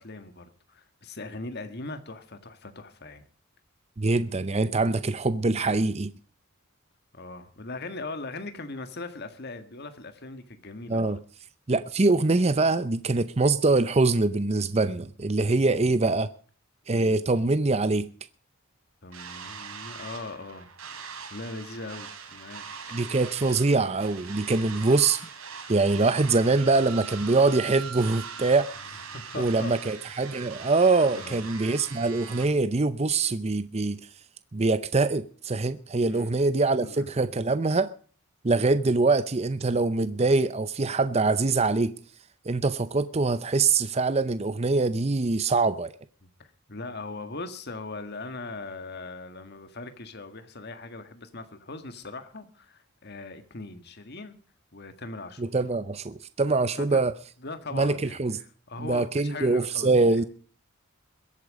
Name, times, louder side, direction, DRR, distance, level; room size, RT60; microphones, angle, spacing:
voice 1, 0.0-3.2 7.1-11.2 16.9-17.2 19.0-20.7 21.3-22.6 29.1-29.7 31.1-31.5 36.1-36.3 36.7-37.1 46.2-54.4 54.7-55.5 56.8-57.0 57.4-60.3, left 3 dB, 50° left, 1.7 m, -40 dB
voice 2, 4.0-6.1 10.9-11.2 11.7-16.3 16.9-18.1 22.9-25.2 25.7-28.7 29.4-34.0 34.5-37.9 38.4-41.9 42.5-45.9 55.4-57.1 57.7-58.4 58.8-60.2, right 3 dB, 30° right, 0.6 m, -24 dB
sound 1, 19.1-32.4, right 6 dB, 80° right, 3.5 m, -41 dB
22.0 x 8.5 x 5.2 m
head